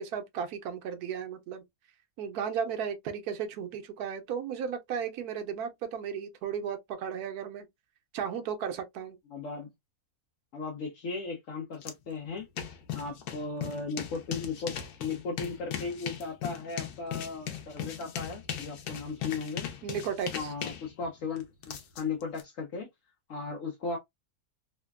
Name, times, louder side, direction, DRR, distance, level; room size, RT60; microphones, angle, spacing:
voice 1, 0.0-1.6 2.2-7.7 8.1-9.2 19.8-20.5, right 7 dB, 85° right, 1.1 m, -35 dB
voice 2, 9.3-9.7 10.5-12.5 12.9-19.7 20.3-22.9 23.3-24.0, left 4 dB, 65° left, 1.0 m, -36 dB
sound 1, 11.8-11.9 12.2-22.4, left 9 dB, 90° left, 1.2 m, -38 dB
3.2 x 2.1 x 2.2 m
omnidirectional pair, 1.6 m